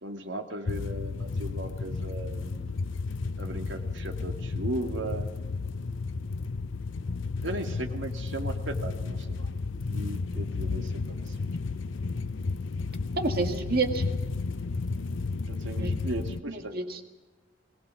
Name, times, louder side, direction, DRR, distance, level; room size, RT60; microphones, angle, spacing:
voice 1, 0.0-2.7 3.4-5.3 7.4-9.5 9.9-11.4 15.5-16.8, right 1 dB, 70° right, 5 dB, 2.1 m, -37 dB
sound 1, 0.7-16.4, left 4 dB, 85° left, 0.6 m, -32 dB
voice 2, 13.2-14.0 15.8-15.9 16.5-17.0, right 3 dB, 55° right, 5 dB, 2.0 m, -29 dB
22.0 x 18.0 x 7.1 m, 1.2 s
head